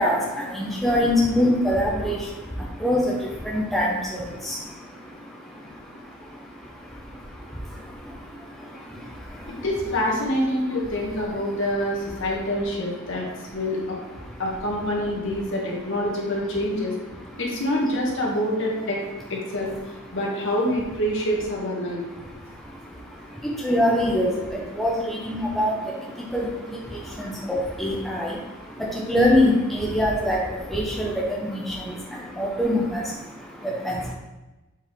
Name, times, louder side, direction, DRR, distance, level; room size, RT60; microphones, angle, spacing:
voice 1, 0.0-9.6 10.9-11.0 11.4-11.6 12.2-12.3 13.1-13.6 14.2-14.4 17.1-17.4 21.9-34.1, left 1 dB, ahead, -4 dB, 0.8 m, -26 dB
voice 2, 9.5-13.2 13.5-14.0 14.4-16.9 17.4-19.0 19.3-19.7 20.1-22.0, left 1 dB, 60° left, -3 dB, 1.7 m, -26 dB
7.3 x 4.2 x 3.6 m, 1.1 s
head